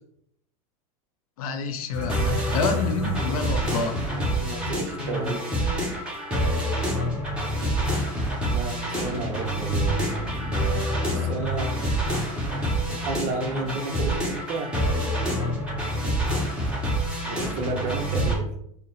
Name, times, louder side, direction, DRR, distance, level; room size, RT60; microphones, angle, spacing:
voice 1, 1.4-4.0, left 4 dB, 80° left, 8 dB, 0.6 m, -28 dB
sound 1, 1.9-18.4, equal, 5° right, 1.2 m, -26 dB
voice 2, 4.1-5.5 8.5-10.0 11.1-11.8 12.8-14.8 17.3-18.5, right 3 dB, 40° right, 3 dB, 0.7 m, -32 dB
4.1 x 2.0 x 4.0 m, 0.72 s
supercardioid pair, 140°, 18 cm